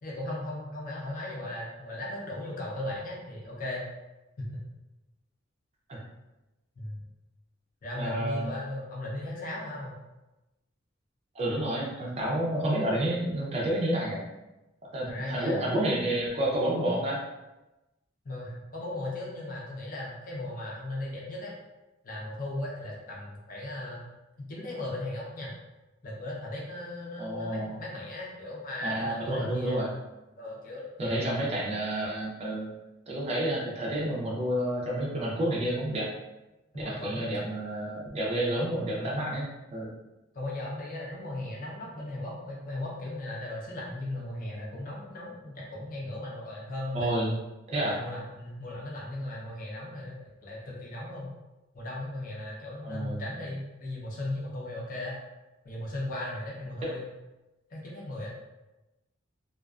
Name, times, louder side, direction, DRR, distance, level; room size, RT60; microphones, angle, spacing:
voice 1, 0.0-3.9 4.4-4.6 6.8-7.0 7.8-9.9 15.1-15.6 16.8-17.0 18.2-21.5 22.0-24.0 24.5-25.5 26.0-29.8 30.4-31.3 36.7-37.3 39.0-39.2 40.3-47.1 47.9-50.2 50.4-51.3 51.7-55.1 55.6-57.0 57.7-58.3, left 1 dB, 45° left, -4 dB, 0.6 m, -37 dB
voice 2, 7.9-8.4 11.3-14.2 14.9-17.2 27.2-27.8 28.8-29.9 31.0-32.7 33.1-36.1 36.7-39.9 46.9-47.3 47.7-48.0 52.8-53.2 56.8-56.9, right 1 dB, 35° right, -4 dB, 0.4 m, -29 dB
2.4 x 2.3 x 2.3 m, 1.0 s
head